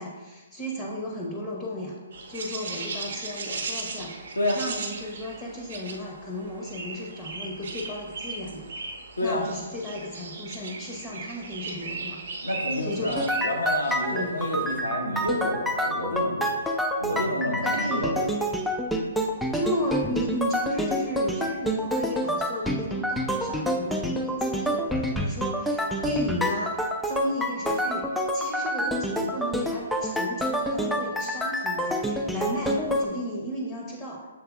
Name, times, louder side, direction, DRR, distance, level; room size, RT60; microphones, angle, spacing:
voice 1, 0.0-2.0 2.3-4.1 4.5-8.7 9.2-12.2 12.8-13.1 14.1-14.4 17.6-18.1 19.5-34.3, equal, 20° left, -3 dB, 0.8 m, -34 dB
sound 1, 2.1-14.8, right 3 dB, 65° right, 0.7 m, -37 dB
voice 2, 12.4-16.6 17.0-18.2, left 1 dB, 85° left, 0 dB, 1.0 m, -29 dB
sound 2, 13.2-33.1, equal, ahead, 0.3 m, -28 dB
7.0 x 3.2 x 2.3 m, 1.2 s
figure-of-eight pair, 130°, 0 cm